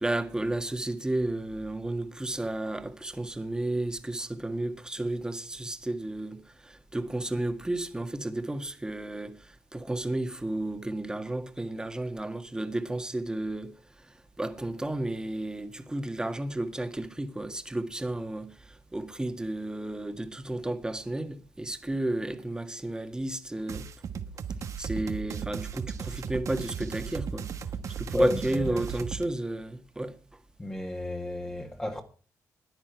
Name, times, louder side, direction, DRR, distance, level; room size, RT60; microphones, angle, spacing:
voice 1, 0.0-13.7 14.4-23.9 24.8-27.5 28.0-30.2, right 2 dB, 10° right, 1.8 m, -32 dB
sound 1, 23.7-29.2, right 7 dB, 60° right, 1.3 m, -36 dB
voice 2, 27.9-28.8 30.6-32.0, left 1 dB, 15° left, 2.0 m, -31 dB
14.0 x 10.0 x 4.6 m
cardioid pair, 95°, 6 cm